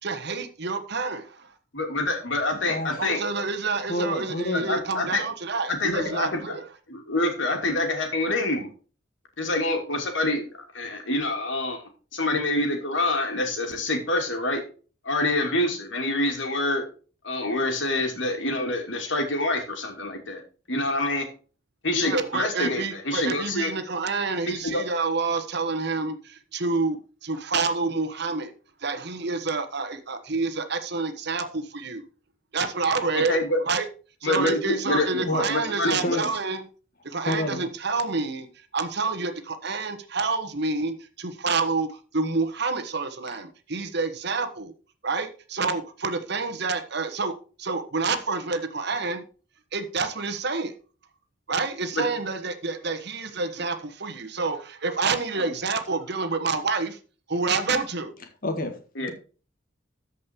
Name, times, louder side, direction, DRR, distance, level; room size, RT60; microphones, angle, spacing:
voice 1, 0.0-1.6 3.0-6.7 21.9-32.0 32.5-33.4 33.7-33.9 34.2-36.6 37.0-44.7 45.0-49.3 49.7-50.7 51.5-57.0 57.3-58.1, right 4 dB, 60° right, 1.3 m, -28 dB
voice 2, 1.7-3.2 4.5-5.2 5.7-6.6 6.9-8.7 9.4-11.8 12.1-14.6 15.0-16.8 17.2-20.4 20.7-21.2 21.8-23.7 24.5-24.8 31.4-31.5 33.3-33.6 34.2-36.2 51.9-52.0 55.4-55.5 59.0-59.1, left 2 dB, 70° left, 2.8 m, -26 dB
voice 3, 2.7-3.2 3.9-4.7 35.2-35.5 36.0-36.3 37.3-37.7 58.4-59.1, left 1 dB, 50° left, 1.9 m, -29 dB
13.5 x 5.4 x 4.5 m
head